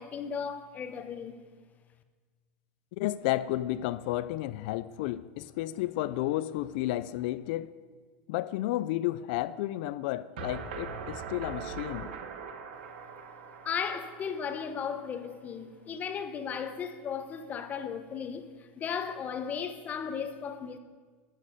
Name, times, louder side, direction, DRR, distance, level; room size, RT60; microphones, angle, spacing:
voice 1, 0.0-1.4 13.6-20.8, left 7 dB, 30° left, 0.9 m, -36 dB
voice 2, 3.0-7.7 8.3-12.1, left 15 dB, 65° left, 0.4 m, -32 dB
sound 1, 10.4-15.3, right 6 dB, 80° right, 1.4 m, -42 dB
14.0 x 6.4 x 6.6 m
supercardioid pair, 135°, 6 cm